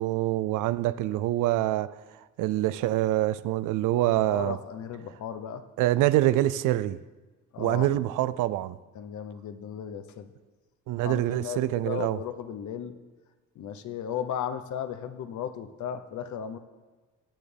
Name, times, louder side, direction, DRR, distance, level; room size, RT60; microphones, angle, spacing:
voice 1, 0.0-2.0 2.4-4.6 5.8-7.0 7.6-8.8 10.9-12.2, right 15 dB, 85° right, 0.5 m, -25 dB
voice 2, 3.9-5.6 7.5-8.0 8.9-10.3 11.0-12.9 13.5-16.6, left 8 dB, 75° left, 0.9 m, -36 dB
16.5 x 9.4 x 3.4 m
cardioid pair, 90°, 30 cm